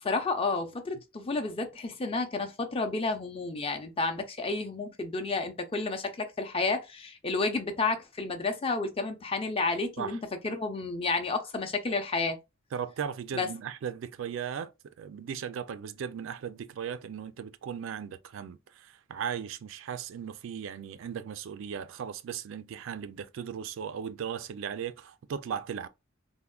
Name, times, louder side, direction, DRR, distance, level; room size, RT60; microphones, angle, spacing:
voice 1, 0.0-12.4 13.3-13.5, left 3 dB, 30° left, 0.5 m, -31 dB
voice 2, 12.7-14.7 15.0-25.9, right 7 dB, 75° right, 0.3 m, -37 dB
3.4 x 2.1 x 2.3 m
head